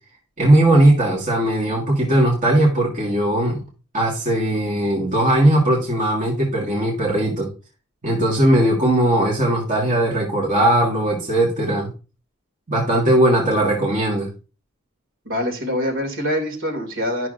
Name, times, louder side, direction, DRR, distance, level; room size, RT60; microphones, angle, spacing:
voice 1, 0.4-3.6 3.9-7.5 8.0-11.9 12.7-14.3, right 1 dB, 35° right, -3 dB, 1.9 m, -18 dB
voice 2, 15.2-17.3, equal, 60° right, 2 dB, 2.6 m, -24 dB
12.0 x 6.1 x 2.6 m, 0.32 s
head